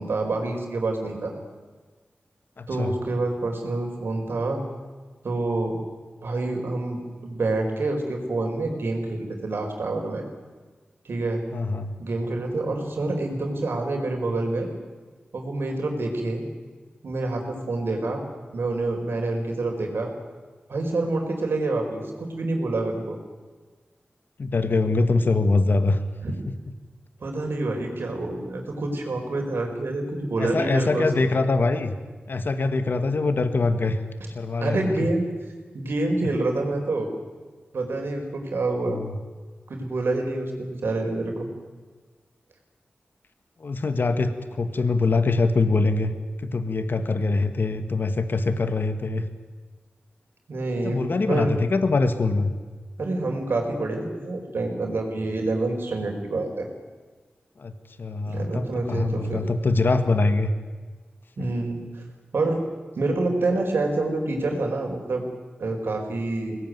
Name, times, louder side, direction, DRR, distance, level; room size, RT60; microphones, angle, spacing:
voice 1, 0.0-1.3 2.7-4.6 5.2-5.8 6.2-10.2 11.0-11.4 12.0-14.7 15.3-16.4 17.0-18.2 18.5-20.1 20.7-23.2 26.2-26.3 27.2-31.3 34.6-35.2 35.7-37.1 37.7-39.0 39.7-41.5 50.5-51.6 53.0-56.7 58.2-59.4 61.4-62.0 62.3-62.6 63.0-65.2 65.6-66.6, right 2 dB, 90° right, 2 dB, 4.7 m, -27 dB
voice 2, 2.6-2.9 11.5-11.9 24.4-26.0 30.4-32.0 32.3-34.0 34.3-34.9 38.9-39.1 43.6-46.1 46.4-49.3 50.8-52.5 57.6-57.7 58.0-60.5, left 3 dB, 65° left, 9 dB, 1.6 m, -23 dB
23.0 x 19.5 x 9.5 m, 1.4 s
wide cardioid pair, 85°, 4 cm